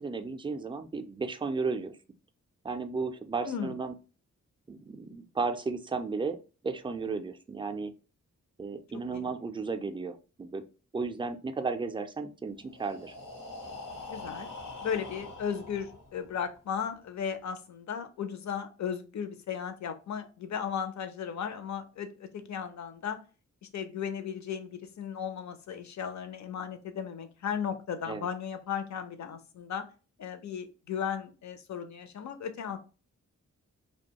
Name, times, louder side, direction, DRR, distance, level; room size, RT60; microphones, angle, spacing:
voice 1, 0.0-1.9 2.6-3.9 4.7-6.4 6.6-7.9 8.6-10.6 10.9-13.1 28.1-28.3, right 4 dB, 15° right, 8 dB, 0.3 m, -34 dB
voice 2, 3.4-3.8 9.1-9.3 14.1-14.5 14.8-23.2 23.6-29.9 30.2-32.8, left 7 dB, 70° left, 9 dB, 0.5 m, -36 dB
Breathing, 12.6-16.5, left 3 dB, 85° left, 1.0 m, -44 dB
2.5 x 2.2 x 2.8 m, 0.34 s
wide cardioid pair, 95°, 30 cm